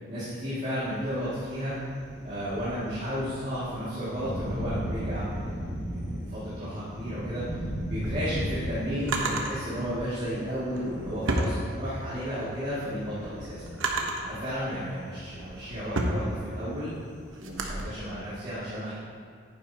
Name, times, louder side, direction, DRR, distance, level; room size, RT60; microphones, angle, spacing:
voice 1, 0.1-1.7 2.2-7.4 7.9-13.7 14.2-16.9 17.4-18.9, equal, 35° right, -12 dB, 2.3 m, -33 dB
Thunder, 0.8-18.3, equal, 35° left, 2.3 m, -38 dB
Drawer open or close, 7.9-9.5 10.6-12.2 12.7-14.3 15.0-17.8, right 2 dB, 85° right, 1.0 m, -32 dB
10.5 x 9.9 x 2.9 m, 2.2 s
head